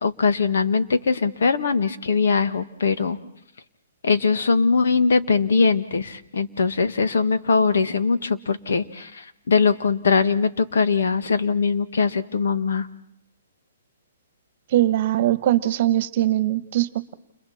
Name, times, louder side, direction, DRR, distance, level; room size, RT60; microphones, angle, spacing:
voice 1, 0.0-3.2 4.0-12.9, left 5 dB, 80° left, 10 dB, 1.7 m, -21 dB
voice 2, 14.7-17.1, right 14 dB, 45° right, 14 dB, 1.3 m, -21 dB
29.5 x 28.5 x 4.4 m, 0.77 s
hypercardioid pair, 160°, 0 cm